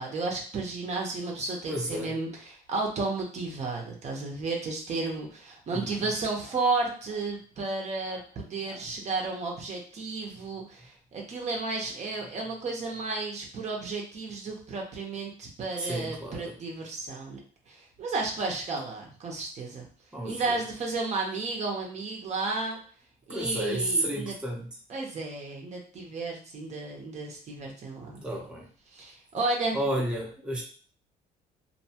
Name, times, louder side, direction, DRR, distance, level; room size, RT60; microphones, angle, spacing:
voice 1, 0.0-17.4 17.7-19.9 20.2-22.8 23.3-24.3 24.9-28.2 28.9-29.8, right 3 dB, 45° right, 0 dB, 0.7 m, -33 dB
voice 2, 1.7-2.1 5.7-6.0 8.7-8.8 15.8-16.5 20.1-20.6 23.3-24.7 28.2-28.7 29.7-30.6, right 1 dB, 5° right, -2 dB, 0.7 m, -31 dB
2.6 x 2.2 x 2.8 m, 0.42 s
cardioid pair, 110°, 17 cm